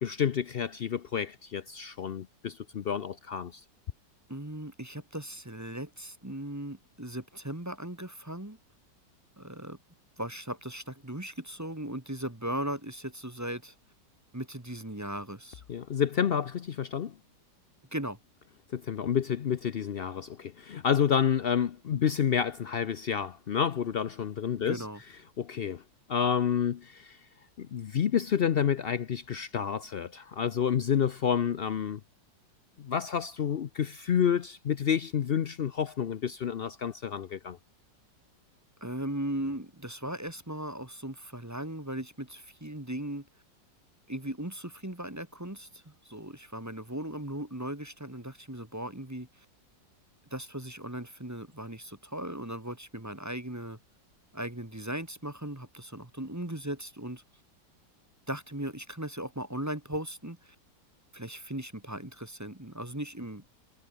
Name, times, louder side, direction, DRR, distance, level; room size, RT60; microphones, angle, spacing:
voice 1, 0.0-3.6 15.7-17.1 18.7-24.8 25.4-25.8 26.1-27.2 27.6-32.0 32.8-37.6, left 8 dB, 85° left, 0.5 m, -29 dB
voice 2, 4.3-8.6 9.4-9.8 10.2-13.7 14.3-15.6 17.9-18.2 24.6-25.0 38.8-43.3 44.1-49.4 50.3-53.8 54.3-57.2 58.3-60.5 61.1-63.4, right 1 dB, 10° right, 1.5 m, -38 dB
omnidirectional pair, 2.0 m